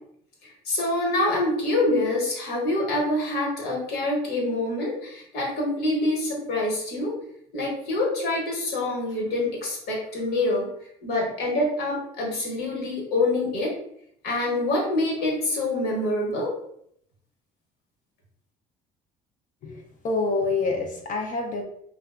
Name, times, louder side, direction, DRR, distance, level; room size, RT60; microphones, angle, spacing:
voice 1, 0.4-7.1 7.5-10.7 11.0-13.7 14.2-16.5, left 2 dB, 65° left, -2 dB, 1.1 m, -26 dB
voice 2, 19.6-21.6, left 3 dB, 45° left, 2 dB, 0.4 m, -27 dB
2.7 x 2.2 x 2.3 m, 0.70 s
supercardioid pair, 85°, 18 cm